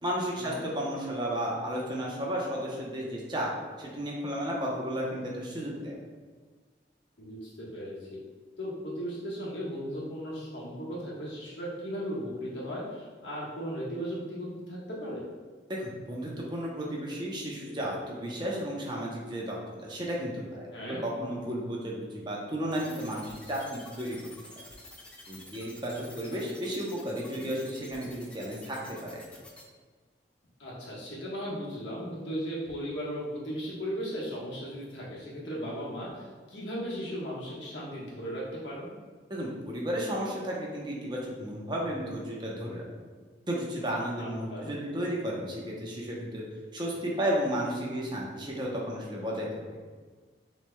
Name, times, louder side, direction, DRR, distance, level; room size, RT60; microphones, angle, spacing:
voice 1, 0.0-3.5 3.8-6.0 15.7-24.2 25.3-28.8 29.0-29.2 39.3-42.9 43.5-46.4 46.7-49.5, equal, 25° right, -3 dB, 0.7 m, -33 dB
voice 2, 7.2-8.2 8.6-15.2 20.7-21.0 30.6-38.9 44.2-44.8, equal, 90° left, -6 dB, 1.3 m, -37 dB
sound 1, 22.7-29.6, left 1 dB, 5° left, 0.4 m, -49 dB
6.5 x 3.2 x 2.2 m, 1.5 s
head